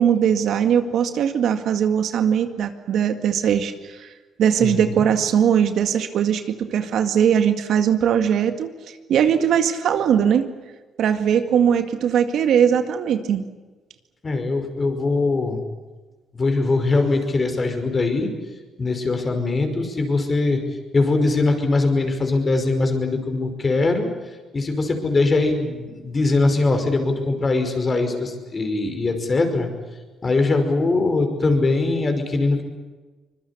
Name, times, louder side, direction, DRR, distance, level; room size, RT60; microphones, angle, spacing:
voice 1, 0.0-4.1 4.4-8.7 9.1-10.5 11.0-13.4, right 8 dB, 75° right, 8 dB, 2.0 m, -20 dB
voice 2, 4.6-5.1 14.2-15.6 16.3-18.3 18.8-20.6 20.9-24.1 24.5-29.7 30.2-32.6, left 3 dB, 35° left, 6 dB, 5.4 m, -21 dB
25.0 x 21.5 x 8.6 m, 1.3 s
cardioid pair, 90°, 0 cm